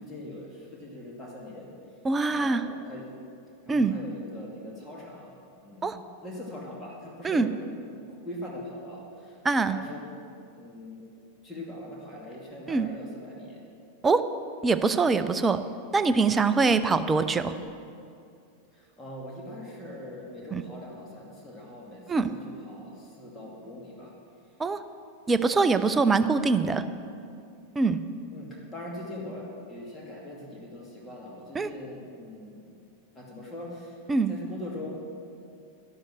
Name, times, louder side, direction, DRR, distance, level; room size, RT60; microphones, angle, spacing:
voice 1, 0.0-1.7 2.2-3.1 3.6-7.6 8.1-9.4 9.7-10.0 10.5-11.1 11.4-13.6 16.6-16.9 18.7-24.1 28.3-32.6 33.1-34.0 34.3-34.9, left 1 dB, 15° left, -3 dB, 2.6 m, -42 dB
voice 2, 2.0-2.6 3.7-3.9 5.8-6.0 7.2-7.5 9.4-9.8 12.7-12.9 14.0-14.2 14.6-15.6 15.9-17.6 20.5-20.6 22.1-22.3 24.6-24.8 25.3-26.8 27.8-28.0 31.5-31.7 34.1-34.3, right 4 dB, 15° right, 11 dB, 0.6 m, -23 dB
12.0 x 11.5 x 6.2 m, 2.4 s
figure-of-eight pair, 90°, 0 cm